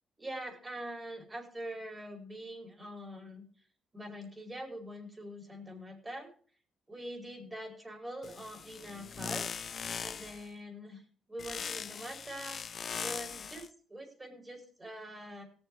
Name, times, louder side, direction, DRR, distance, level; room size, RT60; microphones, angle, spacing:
voice 1, 0.2-3.4 3.9-6.3 6.9-9.5 10.0-11.0 11.3-12.6 13.0-15.5, equal, 20° right, 2 dB, 4.9 m, -44 dB
sound 1, 8.2-10.5 11.4-13.7, left 7 dB, 50° left, 0.5 m, -40 dB
18.0 x 7.2 x 4.8 m, 0.42 s
cardioid pair, 90°, 0 cm